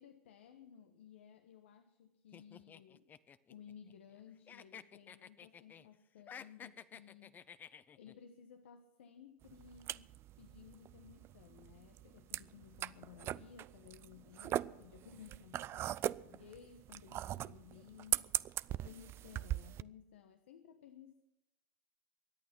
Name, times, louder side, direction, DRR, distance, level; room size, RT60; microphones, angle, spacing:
voice 1, 0.0-3.1 3.5-10.1 10.4-21.2, left 8 dB, 85° left, 8 dB, 1.3 m, -57 dB
sound 1, 2.3-4.2 4.5-5.9 6.2-8.1, left 8 dB, 30° left, 0.7 m, -53 dB
sound 2, 9.4-19.8, right 13 dB, 40° right, 0.5 m, -40 dB
23.0 x 8.7 x 6.1 m, 0.91 s
hypercardioid pair, 105°, 6 cm